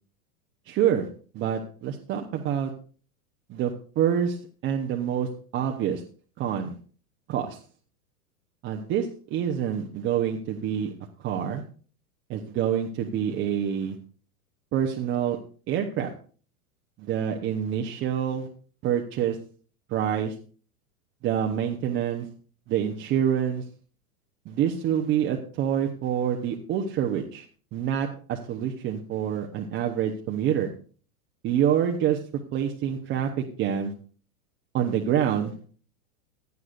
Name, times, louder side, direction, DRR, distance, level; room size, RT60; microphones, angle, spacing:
voice 1, 0.7-1.1 1.3-2.7 3.5-4.4 4.6-6.0 6.4-6.8 7.3-7.6 8.6-10.9 11.2-11.6 12.3-14.0 14.7-15.4 15.7-16.1 17.0-18.5 18.8-19.4 19.9-20.3 21.2-22.3 22.7-23.6 24.5-27.4 27.7-30.7 31.4-32.2 32.5-33.9 34.7-35.5, right 9 dB, 25° right, 2 dB, 0.9 m, -26 dB
16.0 x 9.6 x 2.6 m, 0.41 s
hypercardioid pair, 135°, 45 cm